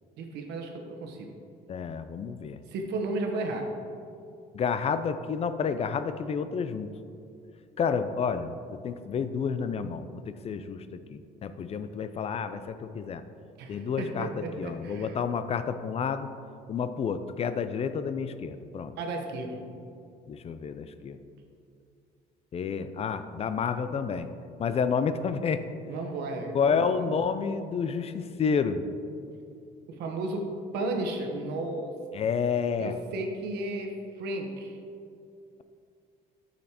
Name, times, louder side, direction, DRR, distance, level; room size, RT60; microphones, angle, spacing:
voice 1, 0.2-1.3 2.7-3.7 13.6-15.2 19.0-19.6 25.9-27.1 29.9-32.0 32.8-34.8, right 2 dB, 80° right, 3 dB, 1.1 m, -34 dB
voice 2, 1.7-2.6 4.5-6.9 7.8-13.2 13.7-14.3 14.6-16.3 16.7-18.9 20.3-21.2 22.5-24.3 24.6-25.6 26.5-28.8 32.1-33.0, left 6 dB, 35° left, 11 dB, 0.4 m, -30 dB
9.6 x 6.4 x 2.9 m, 2.5 s
cardioid pair, 110°, 17 cm